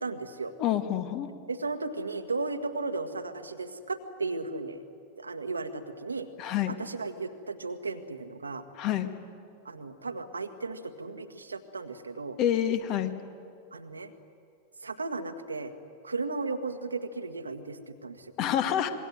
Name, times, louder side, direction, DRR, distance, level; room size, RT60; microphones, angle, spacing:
voice 1, 0.0-0.6 1.5-4.8 5.2-6.3 6.7-8.6 9.6-12.4 13.7-14.1 14.8-15.7 16.0-18.3, right 3 dB, 80° right, 8 dB, 1.7 m, -35 dB
voice 2, 0.6-1.3 6.4-6.7 8.8-9.1 12.4-13.1 18.4-18.9, left 10 dB, 40° left, 9 dB, 1.9 m, -27 dB
26.0 x 22.5 x 9.4 m, 2.4 s
figure-of-eight pair, 90°, 0 cm